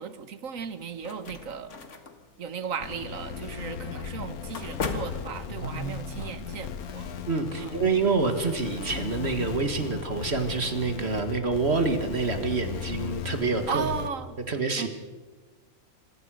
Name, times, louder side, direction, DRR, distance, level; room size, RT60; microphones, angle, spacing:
voice 1, 0.0-1.8 2.4-7.1 7.6-7.8 13.7-14.4 14.8-14.9, right 6 dB, 65° right, 12 dB, 1.6 m, -36 dB
sound 1, 0.6-5.9, left 4 dB, 55° left, 2.0 m, -39 dB
sound 2, 2.8-14.1, left 7 dB, 80° left, 1.5 m, -37 dB
voice 2, 5.5-5.9 6.2-6.3 7.3-13.9 14.5-14.9, right 4 dB, 45° right, 7 dB, 2.2 m, -27 dB
26.5 x 16.5 x 6.4 m, 1.3 s
omnidirectional pair, 1.5 m